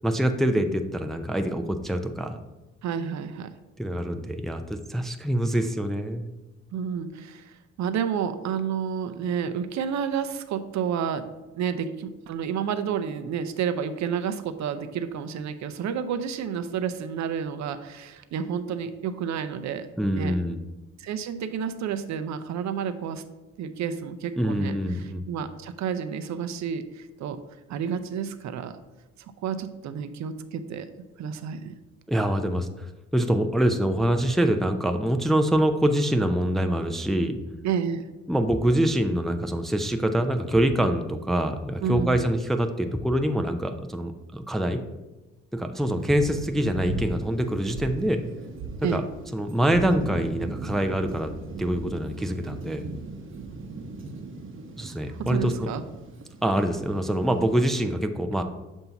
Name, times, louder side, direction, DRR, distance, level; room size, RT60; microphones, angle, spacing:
voice 1, 0.0-2.4 3.8-6.3 20.0-20.6 24.4-25.2 32.1-32.9 33.1-37.3 38.3-44.8 45.5-48.2 48.8-49.0 49.3-51.3 51.6-52.9 54.6-55.7 56.4-58.4, right 1 dB, ahead, 5 dB, 0.4 m, -25 dB
voice 2, 2.8-3.5 6.7-11.3 11.5-19.9 20.1-20.3 21.0-23.2 23.6-27.4 27.7-28.7 29.2-30.9 31.2-31.7 37.6-38.0 41.8-42.2 48.8-49.0 55.1-55.8, right 7 dB, 65° right, 10 dB, 0.6 m, -30 dB
Thunder, 46.0-57.6, right 3 dB, 45° right, 0.8 m, -38 dB
7.0 x 2.7 x 5.7 m, 1.1 s
cardioid pair, 90°, 30 cm